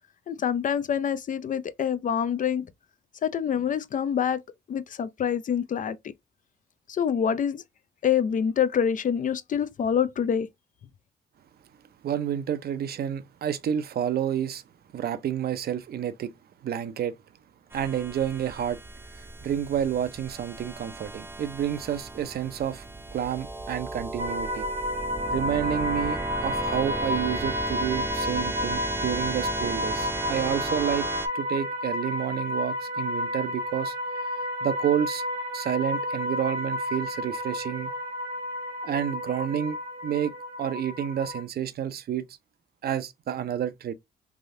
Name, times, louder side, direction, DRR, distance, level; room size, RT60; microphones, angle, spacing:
voice 1, 0.3-2.7 3.2-4.4 4.7-6.0 6.9-7.6 8.0-10.5, left 8 dB, 45° left, 0.4 m, -26 dB
voice 2, 12.0-14.6 14.9-16.3 16.6-17.2 17.7-18.8 19.1-22.9 23.1-24.7 25.3-31.1 31.3-33.9 34.6-35.2 35.5-37.9 38.8-39.8 40.0-42.2 42.8-43.9, right 10 dB, 60° right, 0.5 m, -29 dB
sound 1, 17.7-31.3, right 2 dB, 10° right, 0.6 m, -35 dB
sound 2, 24.2-41.4, left 1 dB, 85° right, 1.1 m, -31 dB
3.3 x 2.6 x 2.5 m
cardioid pair, 75°, 18 cm